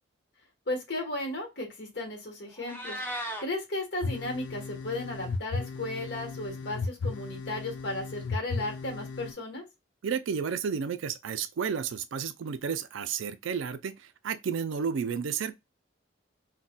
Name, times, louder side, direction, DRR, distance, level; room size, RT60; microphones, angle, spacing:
voice 1, 0.7-3.0 3.4-9.6, left 2 dB, 60° left, 1.2 m, -35 dB
Meow, 2.5-3.4, equal, 10° left, 0.5 m, -36 dB
sound 1, 4.0-9.3, left 4 dB, 75° left, 0.4 m, -35 dB
voice 2, 10.0-15.5, right 6 dB, 75° right, 0.4 m, -32 dB
3.9 x 2.2 x 2.2 m
head